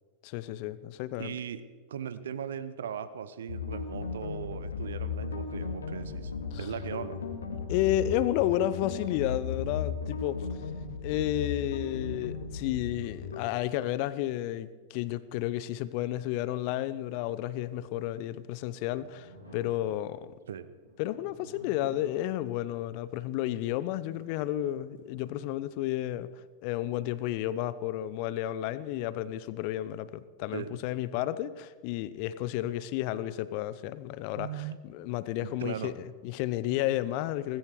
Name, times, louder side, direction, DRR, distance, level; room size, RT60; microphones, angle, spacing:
voice 1, 0.2-1.4 6.5-6.7 7.7-10.6 11.0-20.3 21.0-26.3 26.6-37.6, left 13 dB, 45° left, 17 dB, 0.8 m, -32 dB
voice 2, 1.2-1.6 1.9-7.2 20.5-20.7 30.5-30.8 34.3-34.8 35.4-35.9, right 8 dB, 65° right, 14 dB, 1.0 m, -38 dB
sound 1, 3.5-13.4, left 5 dB, 75° left, 2.4 m, -36 dB
sound 2, 18.6-25.6, right 1 dB, 90° right, 5.8 m, -55 dB
18.5 x 15.5 x 4.8 m, 1.5 s
figure-of-eight pair, 90°, 0 cm